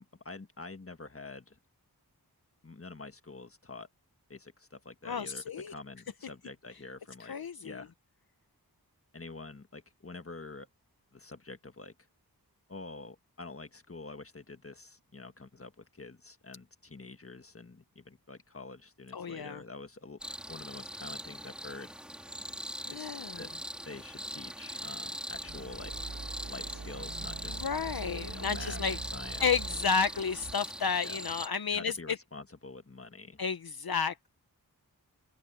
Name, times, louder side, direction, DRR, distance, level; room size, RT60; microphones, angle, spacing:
voice 1, 0.0-1.6 2.6-3.9 4.3-7.9 9.1-10.7 11.1-11.9 12.7-20.2 20.5-21.9 22.9-23.1 23.4-23.5 23.8-25.9 26.5-27.6 28.3-29.4 31.0-31.2 31.7-33.4, left 3 dB, 35° left, 1.6 m, -47 dB
voice 2, 5.0-5.7 7.2-7.8 19.1-19.6 22.8-23.4 27.5-29.0 29.4-32.2 33.4-34.3, left 6 dB, 65° left, 0.8 m, -32 dB
sound 1, 20.2-31.5, equal, ahead, 2.8 m, -41 dB
sound 2, 25.3-30.5, right 4 dB, 85° right, 4.7 m, -43 dB
wide cardioid pair, 50°, 39 cm